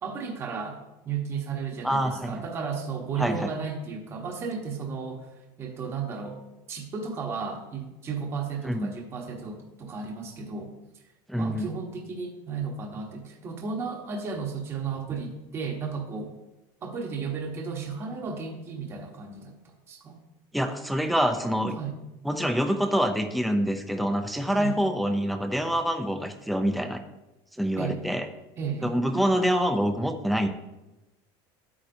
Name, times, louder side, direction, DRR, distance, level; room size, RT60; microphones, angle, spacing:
voice 1, 0.0-0.8 1.0-5.3 5.6-6.4 6.7-10.7 11.3-16.3 16.8-19.6 19.9-20.2 21.7-22.0 24.5-24.8 27.8-28.0 28.6-29.0, right 5 dB, 25° right, 2 dB, 1.1 m, -34 dB
voice 2, 1.8-2.3 3.2-3.5 8.6-8.9 11.3-11.7 20.5-21.8 22.2-27.0 27.6-28.3 28.8-30.5, equal, ahead, 6 dB, 0.4 m, -26 dB
11.0 x 8.6 x 2.7 m, 0.98 s
cardioid pair, 175°, 11 cm